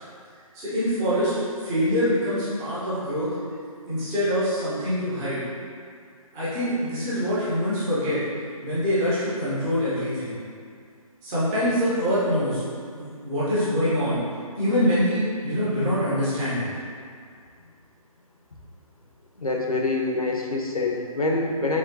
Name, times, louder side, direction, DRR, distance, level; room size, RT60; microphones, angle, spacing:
voice 1, 0.5-1.3 1.6-3.3 3.9-5.4 6.3-8.2 8.6-10.4 11.2-12.6 12.9-14.2 14.6-16.7, equal, 5° right, -11 dB, 0.4 m, -24 dB
voice 2, 19.4-21.8, left 2 dB, 75° left, 0 dB, 0.7 m, -25 dB
5.0 x 3.6 x 2.6 m, 2.2 s
figure-of-eight pair, 145°, 19 cm